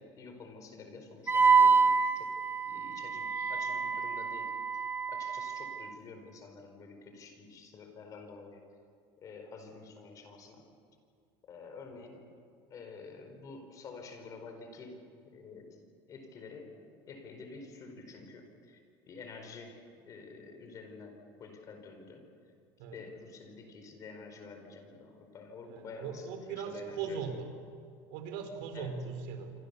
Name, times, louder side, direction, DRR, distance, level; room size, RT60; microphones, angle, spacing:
voice 1, 0.0-2.4 2.6-8.7 9.2-10.6 11.5-12.2 12.5-15.0 15.3-15.8 16.1-18.8 19.1-22.2 22.9-27.2 28.7-29.0, left 4 dB, 35° left, 5 dB, 4.8 m, -49 dB
Wind instrument woodwind instrument, 1.3-5.9, right 5 dB, 20° right, 1.3 m, -27 dB
voice 2, 25.6-27.5 28.1-29.5, right 6 dB, 75° right, 6 dB, 4.4 m, -39 dB
27.5 x 25.0 x 7.0 m, 2.4 s
cardioid pair, 155°, 10 cm